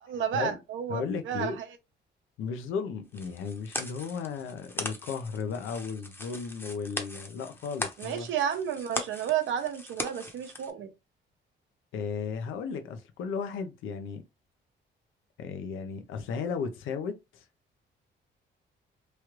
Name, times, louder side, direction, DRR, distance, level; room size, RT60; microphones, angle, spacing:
voice 1, 0.1-1.7 8.0-10.9, right 9 dB, 75° right, 0.7 m, -31 dB
voice 2, 0.9-1.6 2.4-8.3 11.9-14.2 15.4-17.4, left 5 dB, 85° left, 0.6 m, -35 dB
sound 1, 3.1-10.7, left 1 dB, 10° left, 0.7 m, -39 dB
3.1 x 2.4 x 3.0 m
cardioid pair, 90°, 20 cm